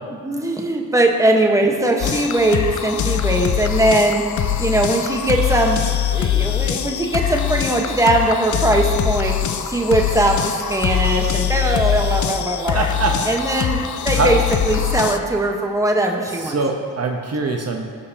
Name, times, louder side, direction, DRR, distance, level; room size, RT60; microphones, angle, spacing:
voice 1, 0.2-4.2 4.6-5.8 6.1-9.4 9.6-12.9 13.3-13.8 14.0-16.6, right 1 dB, 10° right, 1 dB, 1.2 m, -20 dB
sound 1, 2.0-15.2, left 10 dB, 45° left, 0.6 m, -22 dB
voice 2, 12.7-13.3 14.1-14.3 16.3-17.9, right 4 dB, 35° right, 2 dB, 1.0 m, -23 dB
19.0 x 6.7 x 2.9 m, 2.2 s
cardioid pair, 70°, 42 cm